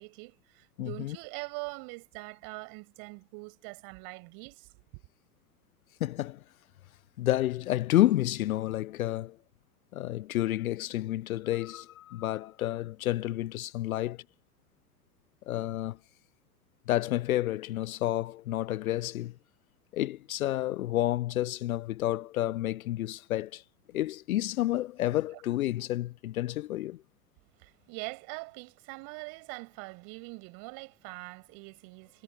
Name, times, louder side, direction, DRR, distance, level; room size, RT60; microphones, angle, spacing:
voice 1, 0.0-5.0 27.6-32.2, right 33 dB, 45° right, 5.6 m, -43 dB
voice 2, 0.8-1.2 6.0-6.4 7.2-9.4 9.9-14.2 15.5-16.0 16.9-19.3 19.9-23.6 23.9-27.0, left 14 dB, 60° left, 0.6 m, -30 dB
figure-of-eight pair, 90°, 49 cm